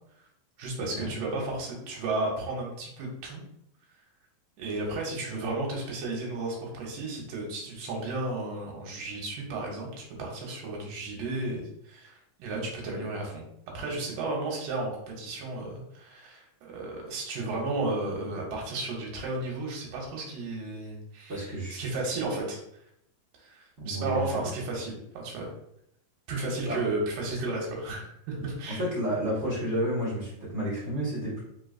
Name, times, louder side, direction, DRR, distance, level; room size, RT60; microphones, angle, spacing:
voice 1, 0.6-3.4 4.6-13.4 13.7-14.9 15.2-21.4 21.7-22.6 23.4-25.5 26.3-28.8, right 2 dB, 85° right, -1 dB, 2.5 m, -33 dB
voice 2, 21.3-21.8 23.8-24.5 26.6-26.8 28.7-31.4, equal, 50° right, -8 dB, 0.8 m, -31 dB
4.6 x 3.8 x 2.4 m, 0.76 s
omnidirectional pair, 3.8 m